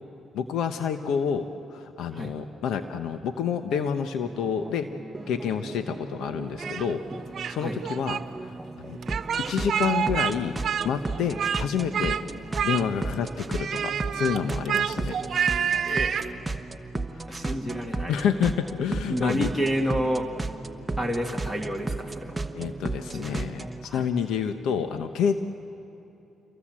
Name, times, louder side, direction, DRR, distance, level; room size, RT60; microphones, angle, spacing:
voice 1, 0.3-4.9 5.3-7.0 7.5-8.6 8.8-9.0 9.5-10.6 10.8-12.2 12.6-15.2 17.4-19.5 22.5-25.4, left 7 dB, 85° left, 8 dB, 1.0 m, -28 dB
sound 1, 4.2-23.9, right 2 dB, 15° right, 1.1 m, -35 dB
Speech, 6.6-7.6 7.8-8.2 9.0-10.3 10.6-11.6 11.9-12.2 12.5-13.1 13.5-16.3, right 8 dB, 60° right, 1.1 m, -28 dB
voice 2, 17.3-18.2 19.1-20.3 21.0-22.4 23.1-23.4 23.8-24.0, equal, 10° left, 2 dB, 2.1 m, -29 dB
28.0 x 23.0 x 7.5 m, 2.9 s
cardioid pair, 90°, 0 cm